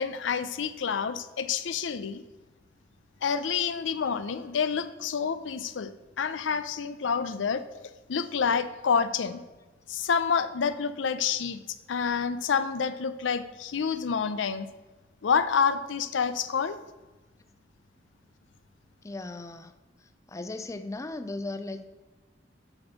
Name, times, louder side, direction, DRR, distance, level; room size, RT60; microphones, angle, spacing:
voice 1, 0.0-2.2 3.2-7.6 8.1-9.4 9.9-11.6 11.9-14.7 15.2-16.8, left 6 dB, 90° left, 12 dB, 0.5 m, -28 dB
voice 2, 19.0-19.7 20.0-21.8, left 2 dB, 15° left, 9 dB, 0.4 m, -37 dB
7.8 x 4.3 x 5.8 m, 1.2 s
head